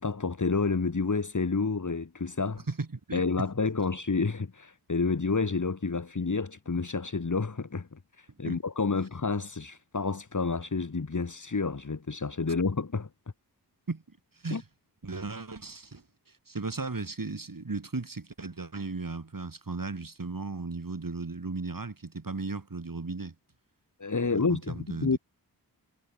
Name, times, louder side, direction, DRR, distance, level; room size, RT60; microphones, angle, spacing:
voice 1, 0.0-2.6 3.1-13.1 14.5-14.6 24.0-25.2, left 4 dB, 45° left, 2.4 m, -29 dB
voice 2, 2.7-3.2 8.4-8.6 13.9-14.0 14.4-14.6 15.0-16.0 16.5-23.3 24.3-25.2, right 3 dB, 50° right, 7.2 m, -36 dB
cardioid pair, 45°, 42 cm